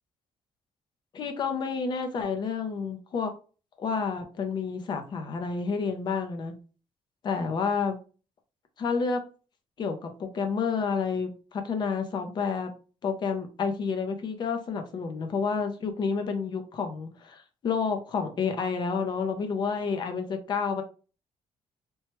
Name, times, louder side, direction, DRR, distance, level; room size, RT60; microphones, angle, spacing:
voice 1, 1.1-3.3 3.8-6.5 7.2-8.0 8.8-9.2 9.8-12.7 13.0-20.8, left 5 dB, 40° left, 6 dB, 0.5 m, -30 dB
2.9 x 2.2 x 2.9 m, 0.36 s
cardioid pair, 175°, 12 cm